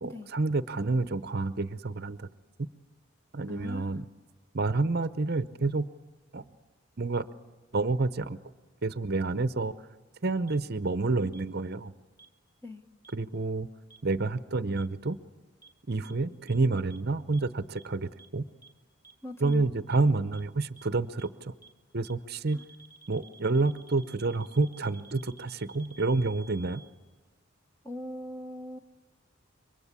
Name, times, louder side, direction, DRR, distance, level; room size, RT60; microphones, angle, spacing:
voice 1, 0.0-2.3 3.3-4.0 4.5-5.8 6.3-6.4 7.0-7.2 7.7-8.4 8.8-9.7 10.2-11.9 13.1-13.7 14.0-15.2 15.9-18.4 19.4-21.5 21.9-22.6 23.1-26.8, right 3 dB, 50° right, 13 dB, 0.8 m, -29 dB
voice 2, 3.5-4.0 12.6-12.8 19.2-19.7 22.5-22.6 27.8-28.8, left 1 dB, 10° left, 6 dB, 1.2 m, -40 dB
sound 1, 10.5-10.6 11.3-11.4 12.2-12.3 13.0-13.1 13.9-14.0 14.8-14.9 15.6-15.7 16.0-16.1 16.5-16.6 16.9-17.0 17.3-17.4 17.8-17.9 18.2-18.3 18.6-18.7 19.0-19.1 19.5-19.6 19.9-20.0 20.3-20.4 20.8-20.9 21.2-21.3 21.6-21.7 22.0-22.1 22.5-26.9, right 4 dB, 10° right, 1.8 m, -53 dB
27.5 x 24.0 x 8.4 m, 1.3 s
head